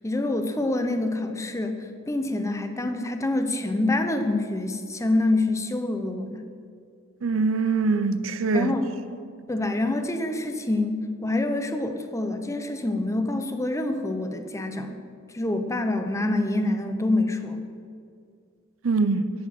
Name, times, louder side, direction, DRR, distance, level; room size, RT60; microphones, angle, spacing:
voice 1, 0.0-6.4 8.5-8.8 9.5-15.0 15.3-17.6, left 2 dB, 15° left, 0.7 m, -26 dB
voice 2, 7.2-8.7 18.8-19.3, right 4 dB, 80° right, 0.6 m, -23 dB
9.3 x 8.3 x 6.1 m
head